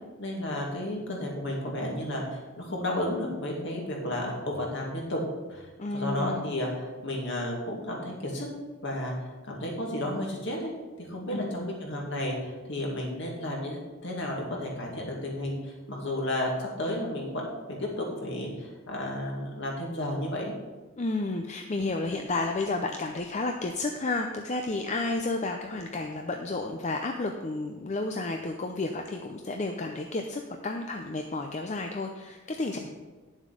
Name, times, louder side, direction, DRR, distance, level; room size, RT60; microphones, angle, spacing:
voice 1, 0.2-5.2 5.5-5.7 5.9-8.5 8.8-10.7 11.0-17.5 17.8-20.5, left 1 dB, 60° left, -1 dB, 2.4 m, -32 dB
voice 2, 5.8-6.5 11.3-11.7 21.0-32.8, left 2 dB, 35° left, 4 dB, 0.6 m, -31 dB
10.5 x 7.3 x 5.1 m, 1.3 s
head